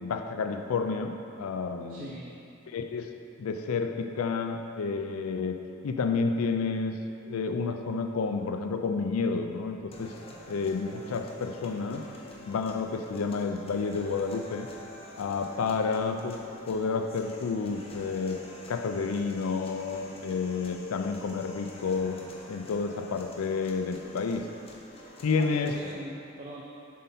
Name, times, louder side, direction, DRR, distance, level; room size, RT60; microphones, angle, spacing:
voice 1, 0.0-2.2 2.7-3.1 3.4-5.6 5.8-6.9 7.2-10.1 10.5-12.0 12.5-14.7 15.2-16.4 16.7-18.4 18.7-22.2 22.5-24.4 25.2-25.7, left 4 dB, 90° left, 6 dB, 0.4 m, -30 dB
voice 2, 1.9-2.3 25.4-26.6, right 1 dB, 40° right, -3 dB, 0.6 m, -41 dB
sound 1, 9.9-25.9, left 1 dB, 30° left, 0.7 m, -48 dB
7.4 x 5.5 x 4.1 m, 2.6 s
head